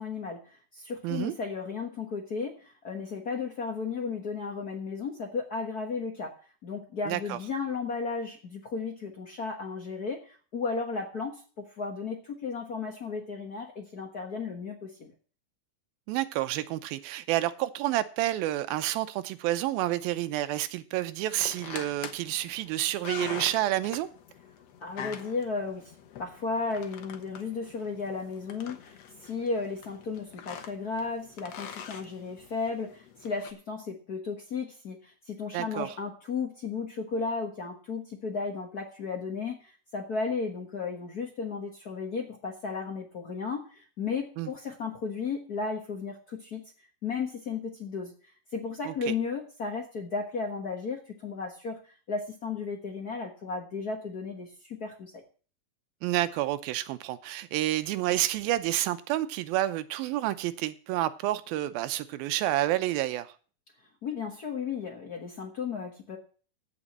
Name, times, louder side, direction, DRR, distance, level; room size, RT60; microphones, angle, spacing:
voice 1, 0.0-6.3 6.6-15.1 24.8-25.9 26.2-46.6 47.0-48.1 48.5-55.2 64.0-66.2, left 4 dB, 80° left, 0.8 m, -34 dB
voice 2, 1.0-1.3 7.1-7.4 16.1-24.1 35.5-35.9 44.4-44.5 48.9-49.1 56.0-63.3, right 14 dB, 90° right, 2.6 m, -29 dB
sound 1, 21.3-33.5, left 8 dB, 60° left, 1.8 m, -44 dB
15.0 x 5.0 x 7.3 m
omnidirectional pair, 4.1 m